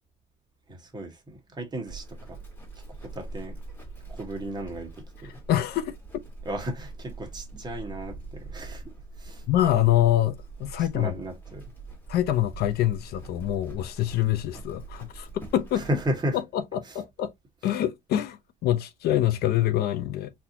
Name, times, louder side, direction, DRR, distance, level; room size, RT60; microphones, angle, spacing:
voice 1, 0.7-2.4 2.9-3.6 4.1-5.4 6.4-8.8 9.2-9.4 10.9-11.7 15.7-16.4 16.8-17.0, equal, 25° right, 1.4 m, -34 dB
Livestock farm animals working animals, 1.9-16.1, right 3 dB, 10° left, 1.7 m, -43 dB
voice 2, 5.5-5.9 9.5-11.1 12.1-15.9 16.5-17.3 17.6-20.3, left 12 dB, 70° left, 0.6 m, -25 dB
4.1 x 2.8 x 2.7 m
cardioid pair, 110°, 17 cm